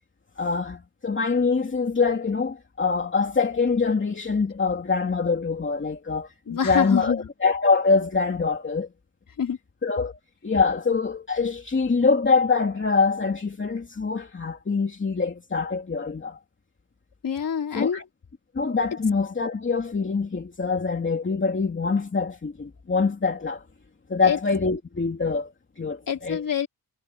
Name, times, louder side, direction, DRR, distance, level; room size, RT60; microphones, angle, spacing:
voice 1, 0.4-8.9 9.8-10.2 10.4-16.4 17.7-18.0 18.5-23.6 24.1-26.4, left 4 dB, 30° left, 2.7 m, -24 dB
voice 2, 6.5-7.2 9.4-9.6 17.2-18.0 24.2-24.4 26.1-26.7, left 7 dB, 55° left, 4.4 m, -26 dB
wide cardioid pair, 130°, 38 cm